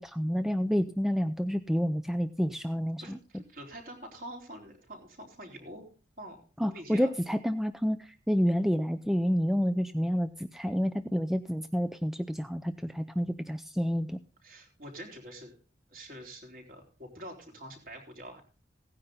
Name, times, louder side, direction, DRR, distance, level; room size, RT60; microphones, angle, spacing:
voice 1, 0.0-3.2 6.6-14.2, equal, ahead, 9 dB, 0.5 m, -29 dB
voice 2, 3.0-5.9 6.2-7.1 14.4-15.5 15.9-18.4, right 1 dB, 50° right, 2 dB, 4.0 m, -46 dB
17.0 x 9.9 x 3.9 m, 0.37 s
head